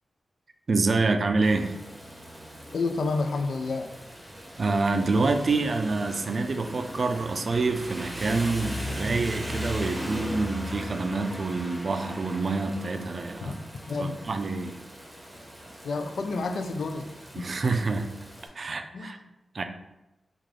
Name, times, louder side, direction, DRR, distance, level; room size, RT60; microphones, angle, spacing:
voice 1, 0.7-1.7 4.6-13.6 14.0-14.8 17.3-18.1 18.6-19.2 19.5-19.6, right 3 dB, 55° right, 7 dB, 0.3 m, -27 dB
Rain, 1.4-18.5, equal, 10° right, 0.8 m, -39 dB
voice 2, 2.7-3.9 13.5-13.6 13.9-14.2 15.8-17.5 18.9-19.2, left 3 dB, 85° left, 6 dB, 0.3 m, -30 dB
3.2 x 2.4 x 3.7 m, 0.97 s
cardioid pair, 75°, 0 cm